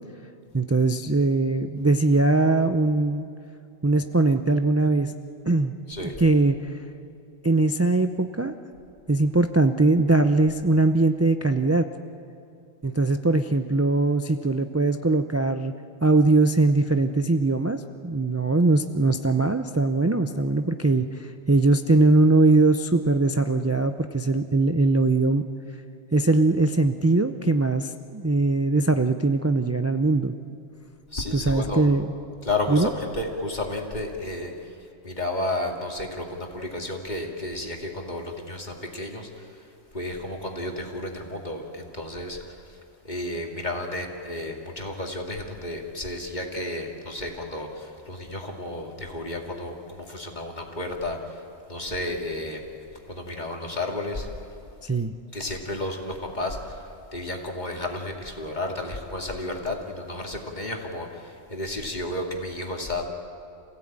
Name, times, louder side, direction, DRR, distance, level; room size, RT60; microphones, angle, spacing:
voice 1, 0.5-3.3 3.8-5.1 5.4-5.7 6.0-6.7 7.4-8.5 9.1-11.9 12.8-15.7 16.0-25.4 26.1-30.3 31.3-32.1 32.7-32.9 54.8-55.1, right 2 dB, 20° right, 7 dB, 0.4 m, -21 dB
voice 2, 31.1-31.9 32.4-34.5 35.0-39.3 39.9-42.4 43.1-51.2 51.7-52.6 53.1-54.3 55.3-56.7 57.1-61.2 61.5-63.1, left 2 dB, 40° left, 1 dB, 2.5 m, -32 dB
27.5 x 16.5 x 8.8 m, 2.5 s
omnidirectional pair, 1.2 m